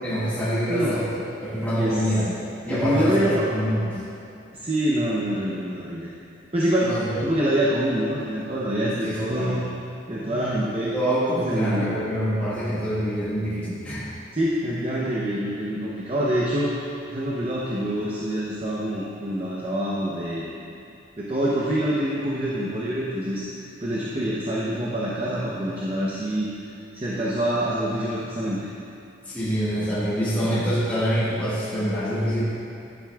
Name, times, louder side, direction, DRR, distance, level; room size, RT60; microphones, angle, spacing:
voice 1, 0.0-2.3 2.6-4.0 6.8-7.3 9.0-9.6 10.8-14.0 29.3-32.4, equal, 10° left, -12 dB, 1.7 m, -25 dB
voice 2, 0.7-1.0 1.7-2.0 2.7-3.6 4.5-6.1 6.5-9.7 10.1-11.0 11.4-11.9 14.3-16.7 17.1-20.4 21.2-26.5 26.9-28.7, right 1 dB, 30° right, -6 dB, 0.8 m, -26 dB
11.0 x 9.3 x 2.4 m, 2.6 s
head